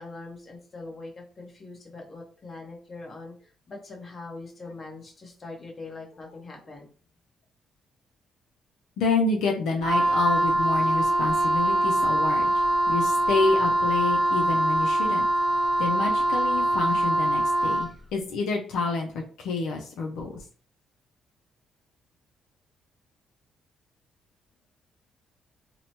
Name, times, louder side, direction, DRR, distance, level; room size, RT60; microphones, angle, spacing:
voice 1, 0.0-6.9, left 3 dB, 35° left, 0 dB, 1.0 m, -42 dB
voice 2, 9.0-12.5 12.9-15.3 15.8-20.4, left 3 dB, 85° left, 1 dB, 0.5 m, -28 dB
Wind instrument woodwind instrument, 9.8-18.0, right 1 dB, 25° right, 0.4 m, -23 dB
2.8 x 2.1 x 2.8 m, 0.41 s
cardioid pair, 90°, 0 cm